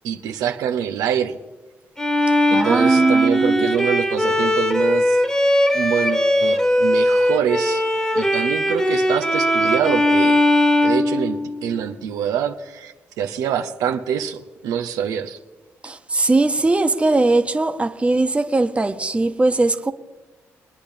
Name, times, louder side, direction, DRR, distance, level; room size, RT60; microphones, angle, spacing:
voice 1, 0.0-1.4 2.5-5.2 5.7-7.8 8.2-10.4 10.8-15.4 15.8-15.9, right 8 dB, 90° right, 0.8 m, -25 dB
Bowed string instrument, 2.0-11.8, left 1 dB, 10° left, 1.6 m, -19 dB
voice 2, 2.5-3.8 15.8-19.9, right 2 dB, 20° right, 1.2 m, -19 dB
24.0 x 9.8 x 3.5 m
cardioid pair, 75°, 6 cm